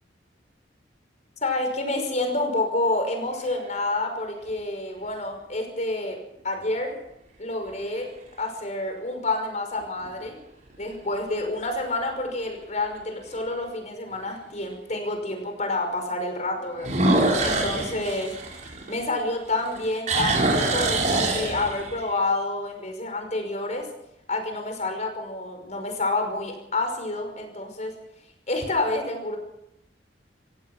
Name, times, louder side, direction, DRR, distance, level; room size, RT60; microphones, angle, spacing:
voice 1, 1.4-6.2 6.4-7.0 7.4-8.1 8.4-10.4 10.8-23.9 24.3-27.9 28.5-29.4, left 2 dB, 40° left, 5 dB, 5.6 m, -28 dB
sound 1, 3.1-3.8 4.5-4.6 9.8-10.3 10.7-10.8 11.4-11.5 11.8-11.9 13.4-13.5 16.8-19.3 19.7-22.0, right 2 dB, 45° right, 5.2 m, -24 dB
26.5 x 17.0 x 6.2 m, 0.81 s
head